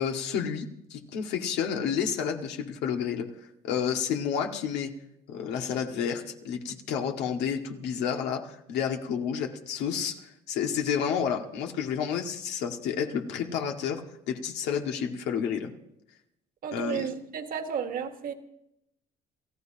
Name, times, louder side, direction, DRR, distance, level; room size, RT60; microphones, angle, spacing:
voice 1, 0.0-3.3 3.6-4.9 5.3-15.7 16.7-17.1, left 7 dB, 90° left, 2 dB, 2.0 m, -30 dB
voice 2, 16.6-18.3, right 7 dB, 55° right, 6 dB, 1.7 m, -33 dB
28.5 x 15.5 x 2.9 m, 0.82 s
cardioid pair, 110°, 17 cm